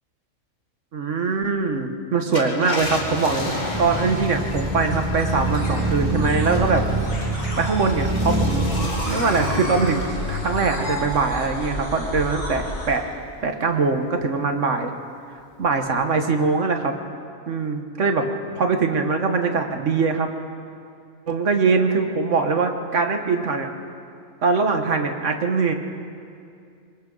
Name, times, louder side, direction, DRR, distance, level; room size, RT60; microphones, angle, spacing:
voice 1, 0.9-3.5 3.8-6.8 7.6-8.7 9.1-13.0 13.4-14.9 15.6-16.9 17.5-18.3 18.5-20.3 21.3-23.7 24.4-25.7, right 4 dB, 65° right, 5 dB, 1.7 m, -22 dB
Car, 2.2-13.0 13.5-13.6 15.6-15.9, left 2 dB, 35° left, 2.2 m, -33 dB
sound 1, 3.7-8.9, right 2 dB, 15° right, 1.3 m, -25 dB
sound 2, 3.9-13.0, equal, 70° left, 6.1 m, -32 dB
26.5 x 24.5 x 4.0 m, 2.4 s
omnidirectional pair, 1.4 m